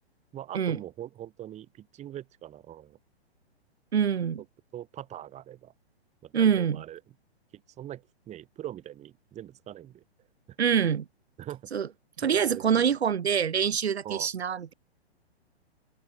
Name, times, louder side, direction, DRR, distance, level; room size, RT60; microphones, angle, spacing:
voice 1, 0.3-3.0 4.7-5.7 6.2-7.0 7.5-10.0 11.4-11.7 12.2-12.9 14.0-14.3, right 12 dB, 20° right, 2.6 m, -42 dB
voice 2, 3.9-4.4 6.3-6.8 10.6-11.0 11.7-11.9 12.2-14.7, right 7 dB, 80° right, 1.4 m, -25 dB
open air
hypercardioid pair, 125°, 32 cm